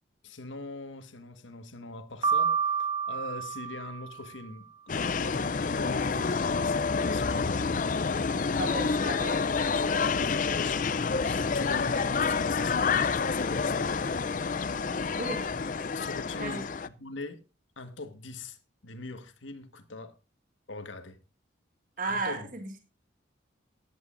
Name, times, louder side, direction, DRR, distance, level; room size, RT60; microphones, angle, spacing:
voice 1, 0.2-2.6 3.1-4.7 4.9-7.8 9.5-9.7 10.1-14.2 15.9-17.4 17.8-18.6 18.8-20.1 20.7-21.2 22.1-22.5, left 3 dB, 75° left, 1.6 m, -42 dB
Piano, 2.2-4.4, right 6 dB, 25° right, 1.2 m, -29 dB
sound 1, 4.9-16.9, left 5 dB, 40° left, 0.5 m, -28 dB
voice 2, 8.6-10.1 15.2-15.4 16.4-16.7 22.0-22.8, right 3 dB, 40° right, 1.6 m, -35 dB
16.0 x 11.0 x 2.6 m
head